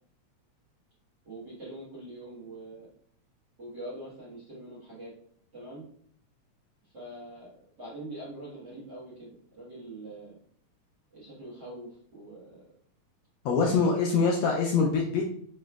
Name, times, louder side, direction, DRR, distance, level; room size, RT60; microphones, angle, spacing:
voice 1, 1.2-2.9 3.6-5.1 5.5-5.8 6.8-10.4 11.1-12.6 13.5-13.9, right 2 dB, 55° right, -9 dB, 1.2 m, -43 dB
voice 2, 13.4-15.3, left 5 dB, 80° left, 0 dB, 1.5 m, -24 dB
4.7 x 3.1 x 2.2 m, 0.62 s
omnidirectional pair, 3.3 m